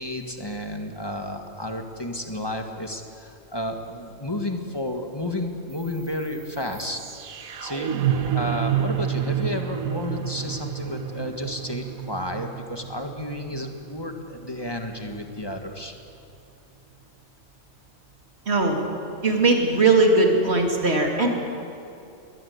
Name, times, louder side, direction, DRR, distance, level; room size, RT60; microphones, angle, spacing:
voice 1, 0.0-7.0 7.6-7.9 8.3-15.9, left 1 dB, 20° left, 4 dB, 1.6 m, -32 dB
sound 1, 5.7-15.7, right 9 dB, 90° right, 1.5 m, -30 dB
voice 2, 18.5-18.8 19.2-21.3, right 3 dB, 50° right, 1 dB, 3.1 m, -19 dB
21.0 x 19.5 x 8.1 m, 2.6 s
omnidirectional pair, 1.4 m